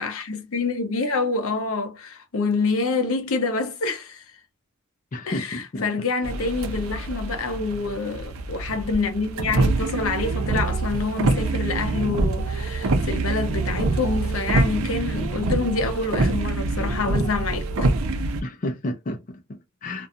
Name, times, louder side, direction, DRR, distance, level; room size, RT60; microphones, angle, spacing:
voice 1, 0.0-4.2 5.3-17.9, left 3 dB, 75° left, 0.7 m, -27 dB
voice 2, 5.1-6.1 18.4-20.1, left 1 dB, 40° left, 0.5 m, -32 dB
sound 1, 6.2-18.4, right 3 dB, 80° right, 0.6 m, -25 dB
2.5 x 2.3 x 2.6 m
head